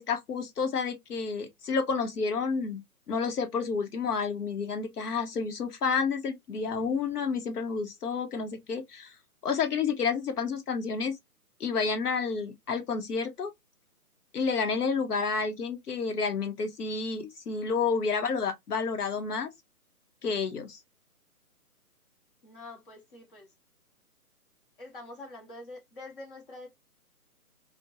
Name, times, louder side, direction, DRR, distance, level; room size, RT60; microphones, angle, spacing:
voice 1, 0.0-9.1 9.4-11.1 11.6-13.5 14.3-19.5 20.2-20.8, left 5 dB, 85° left, 0.9 m, -30 dB
voice 2, 22.4-23.5 24.8-26.7, left 2 dB, 35° left, 1.0 m, -45 dB
2.5 x 2.2 x 2.6 m
hypercardioid pair, 165°, 45 cm